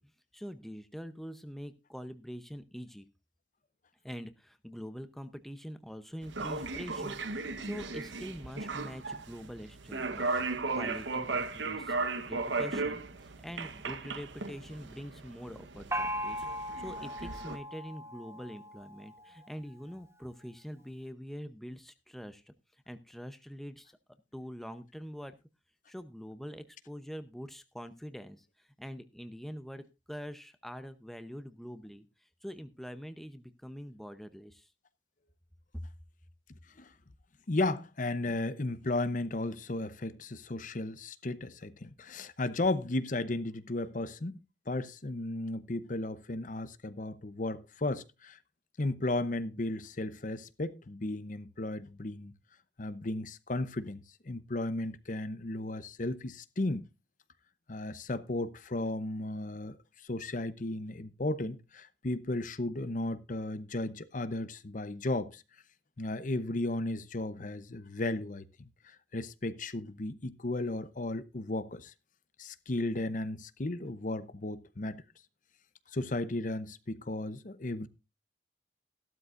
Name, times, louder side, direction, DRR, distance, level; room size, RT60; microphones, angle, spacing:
voice 1, 0.3-3.1 4.0-16.5 16.8-22.5 22.9-24.0 24.3-25.3 25.9-34.7 35.7-35.8, equal, ahead, 0.7 m, -44 dB
sound 1, 6.2-17.6, right 3 dB, 85° right, 1.1 m, -36 dB
Gong, 15.9-19.4, equal, 15° right, 1.1 m, -38 dB
voice 2, 37.5-44.4 44.7-48.4 48.8-52.3 52.8-56.9 57.7-59.8 60.0-65.4 66.0-68.4 68.8-71.9 72.4-75.0 75.9-77.9, left 2 dB, 45° left, 0.8 m, -35 dB
15.0 x 12.5 x 2.5 m
head